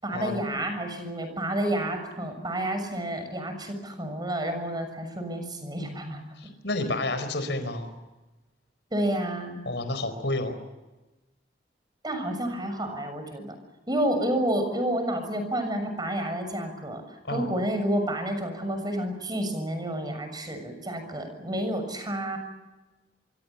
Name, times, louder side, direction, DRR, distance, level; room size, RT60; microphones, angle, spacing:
voice 1, 0.0-6.2 8.9-9.6 12.0-13.5 13.9-17.0 17.3-22.4, right 1 dB, 25° right, 7 dB, 6.7 m, -30 dB
voice 2, 6.4-7.9 9.6-10.6 17.2-17.5, left 2 dB, 85° left, 9 dB, 4.7 m, -30 dB
26.5 x 24.5 x 7.2 m, 1.1 s
head